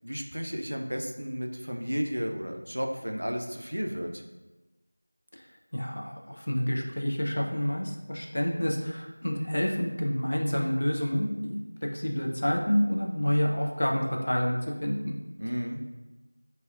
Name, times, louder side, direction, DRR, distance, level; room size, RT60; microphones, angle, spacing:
voice 1, 0.0-4.2 15.4-15.8, equal, 80° right, 3 dB, 0.4 m, -33 dB
voice 2, 5.7-14.5 14.8-15.1, equal, 40° left, 1 dB, 0.3 m, -28 dB
3.3 x 2.2 x 2.3 m, 1.1 s
figure-of-eight pair, 180°, 0 cm